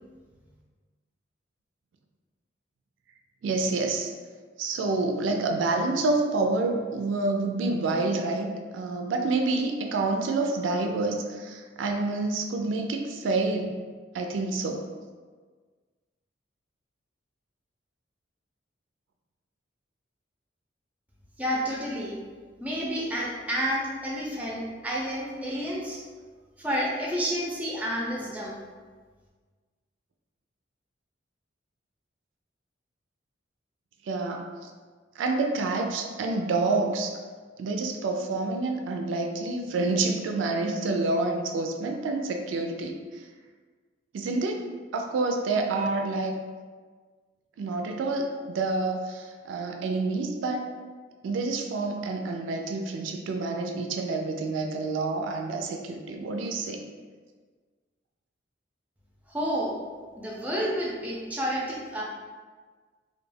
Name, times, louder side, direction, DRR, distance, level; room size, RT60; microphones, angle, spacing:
voice 1, 3.4-4.1 4.6-13.7 14.1-14.9 34.0-34.4 35.2-37.2 37.6-43.0 44.1-44.6 44.9-46.3 47.6-50.7 51.2-56.8, right 3 dB, 80° right, 3 dB, 0.3 m, -28 dB
voice 2, 21.4-22.2 22.6-26.0 26.6-28.6 59.3-59.7 60.2-62.0, equal, 10° right, -4 dB, 0.4 m, -30 dB
2.3 x 2.2 x 3.2 m, 1.5 s
head